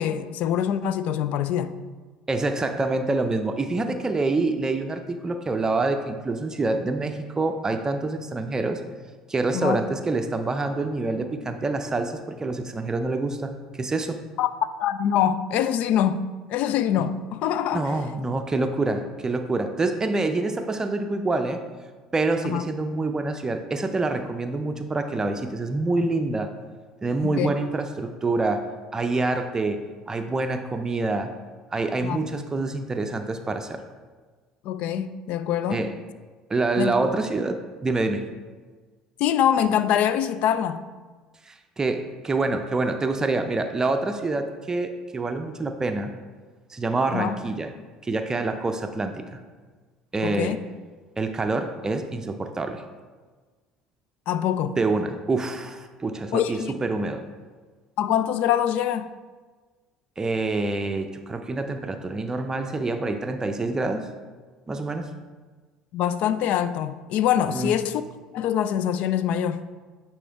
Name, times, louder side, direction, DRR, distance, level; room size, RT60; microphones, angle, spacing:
voice 1, 0.0-1.7 9.5-9.8 14.4-14.5 14.8-17.9 22.4-22.6 27.2-27.5 32.0-32.2 34.6-35.8 36.8-36.9 39.2-40.8 47.1-47.3 50.2-50.6 54.3-54.8 56.3-56.8 58.0-59.1 65.9-68.0 68.3-69.6, left 10 dB, 60° left, 13 dB, 0.3 m, -24 dB
voice 2, 2.3-8.8 9.3-14.2 17.7-21.6 22.1-26.6 27.0-28.7 28.9-31.3 31.7-33.8 35.7-36.0 36.5-38.3 41.5-46.1 46.7-47.7 48.0-49.4 50.1-50.6 51.2-52.8 54.8-57.2 60.2-64.1 64.7-65.1 67.5-67.8, right 3 dB, 25° right, 7 dB, 0.5 m, -26 dB
9.3 x 3.2 x 3.4 m, 1.4 s
hypercardioid pair, 65°, 3 cm